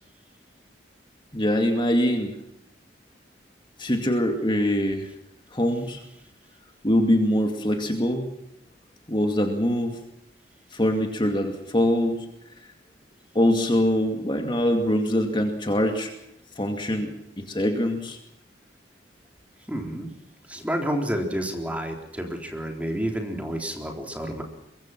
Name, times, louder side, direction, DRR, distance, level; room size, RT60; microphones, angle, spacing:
voice 1, 1.3-2.4 3.8-5.1 5.5-6.0 6.8-8.3 9.1-10.0 10.7-12.2 13.3-16.1 16.6-18.2, equal, 25° left, 4 dB, 2.4 m, -23 dB
voice 2, 19.7-20.1 20.5-24.4, equal, 10° right, 2 dB, 3.8 m, -29 dB
23.5 x 23.0 x 6.0 m, 0.84 s
head